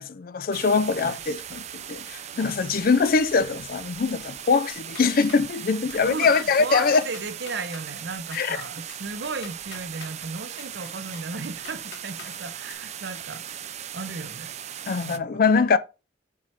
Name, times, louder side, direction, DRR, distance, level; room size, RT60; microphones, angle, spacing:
voice 1, 0.0-7.0 8.3-8.6 14.9-15.8, left 5 dB, 50° left, 0.4 m, -23 dB
sound 1, 0.5-15.2, right 10 dB, 35° right, 0.4 m, -38 dB
voice 2, 1.0-1.4 6.1-13.6 13.9-14.7 15.0-15.4, right 3 dB, 60° right, 0.8 m, -35 dB
sound 2, 4.7-5.5 5.9-6.3 6.6-6.7 7.0-7.8 8.3-10.1 10.5-12.3 12.7-12.8, left 5 dB, 70° left, 1.6 m, -45 dB
6.0 x 4.4 x 4.4 m
head